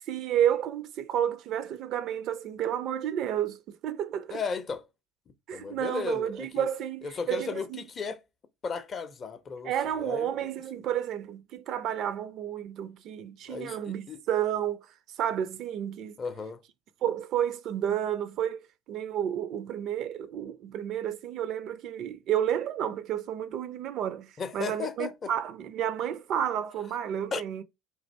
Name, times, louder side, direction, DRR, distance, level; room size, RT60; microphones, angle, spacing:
voice 1, 0.1-4.4 5.5-7.8 9.6-14.9 15.2-16.2 17.0-27.6, right 10 dB, 50° right, 0.3 m, -31 dB
voice 2, 4.3-4.9 5.5-6.7 7.0-8.2 8.6-10.5 13.5-13.8 14.1-14.2 16.2-16.6 24.4-25.3 27.3-27.4, left 5 dB, 35° left, 0.5 m, -35 dB
3.2 x 2.5 x 3.1 m
figure-of-eight pair, 65°, 0 cm